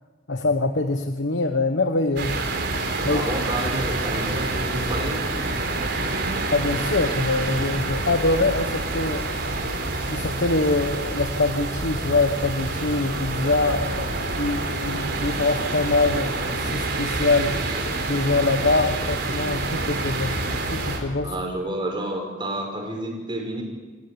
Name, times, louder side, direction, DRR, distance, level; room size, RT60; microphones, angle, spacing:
voice 1, 0.3-2.4 3.0-3.2 6.5-9.2 10.1-17.5 18.1-20.3 20.7-21.3, left 2 dB, 65° left, 6 dB, 1.2 m, -24 dB
sound 1, 2.2-21.0, right 2 dB, 60° right, 4.2 m, -27 dB
voice 2, 3.0-5.3 21.2-23.6, right 1 dB, 25° right, 1 dB, 5.5 m, -30 dB
27.5 x 14.0 x 9.9 m, 1.3 s
head